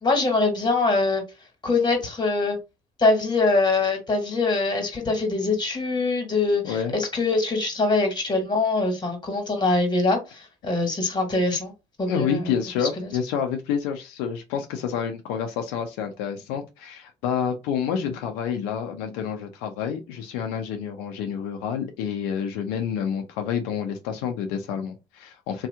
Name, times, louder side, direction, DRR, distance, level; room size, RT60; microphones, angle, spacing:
voice 1, 0.0-1.2 1.6-2.6 3.0-11.7 12.0-12.4, left 3 dB, 30° left, 1.5 m, -23 dB
voice 2, 6.6-6.9 12.1-25.7, left 7 dB, 90° left, 0.5 m, -28 dB
2.8 x 2.3 x 3.3 m
supercardioid pair, 75°, 16 cm